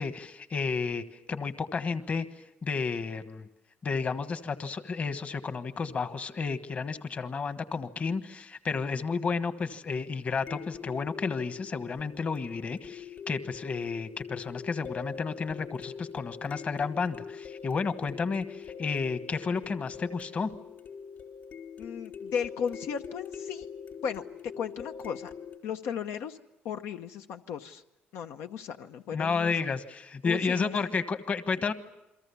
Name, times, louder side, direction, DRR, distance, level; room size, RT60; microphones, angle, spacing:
voice 1, 0.0-2.2 2.6-3.5 3.8-20.5 29.1-31.7, left 5 dB, 35° left, 11 dB, 1.3 m, -32 dB
sound 1, 5.8-5.9 10.5-25.6, left 6 dB, 55° left, 3.7 m, -43 dB
voice 2, 21.8-23.7 24.0-24.3 24.6-25.3 25.6-26.4 26.6-27.8 28.1-29.5 30.2-30.8, left 7 dB, 85° left, 7 dB, 0.9 m, -35 dB
29.0 x 23.0 x 7.1 m, 0.86 s
cardioid pair, 130°, 4 cm